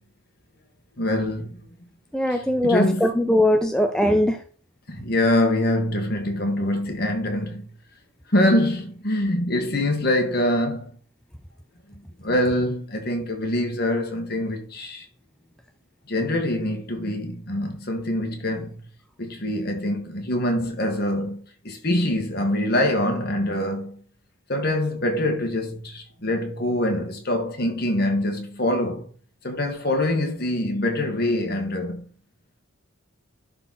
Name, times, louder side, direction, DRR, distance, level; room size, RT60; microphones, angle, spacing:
voice 1, 1.0-1.6 2.3-3.1 4.9-7.6 8.3-10.9 11.9-15.0 16.1-18.8 19.2-21.4 21.6-23.9 24.5-29.1 29.4-32.0, left 1 dB, 45° left, 1.8 m, -24 dB
voice 2, 2.1-4.4, left 1 dB, 5° left, 0.4 m, -20 dB
11.0 x 4.0 x 4.2 m
head